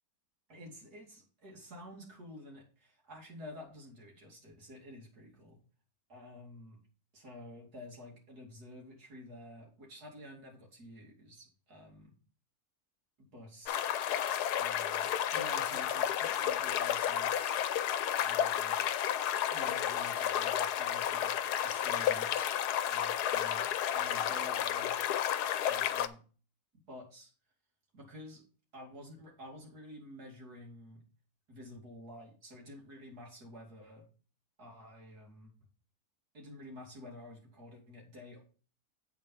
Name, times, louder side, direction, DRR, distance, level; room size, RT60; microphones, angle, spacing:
voice 1, 0.5-5.6 6.1-6.8 7.1-12.1 13.2-13.8 14.6-17.6 18.2-18.8 19.5-23.6 23.9-25.1 25.7-26.2 26.9-27.3 27.9-28.4 28.7-31.0 31.5-34.1 34.6-35.5 36.3-38.4, left 1 dB, 75° right, -1 dB, 3.2 m, -50 dB
sound 1, 13.7-26.1, left 10 dB, 85° left, 1.2 m, -32 dB
8.3 x 4.7 x 5.8 m, 0.37 s
omnidirectional pair, 1.7 m